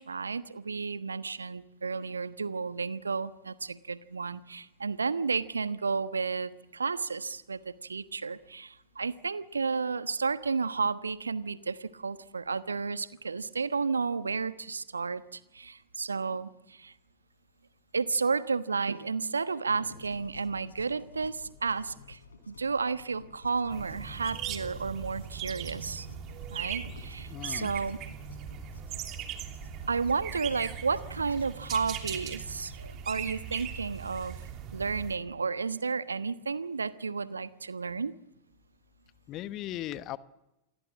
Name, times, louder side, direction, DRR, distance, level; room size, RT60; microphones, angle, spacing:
voice 1, 0.0-16.9 17.9-22.2 22.5-26.1 26.5-28.0 29.9-34.4 34.7-38.1, right 4 dB, 75° right, 14 dB, 1.1 m, -32 dB
sound 1, 19.7-33.8, left 3 dB, 75° left, 4.3 m, -51 dB
sound 2, 23.7-35.2, right 9 dB, 35° right, 3.0 m, -40 dB
voice 2, 27.3-27.7 39.3-40.2, left 13 dB, 35° left, 15 dB, 1.1 m, -37 dB
28.0 x 20.5 x 7.3 m, 0.94 s
figure-of-eight pair, 90°, 0 cm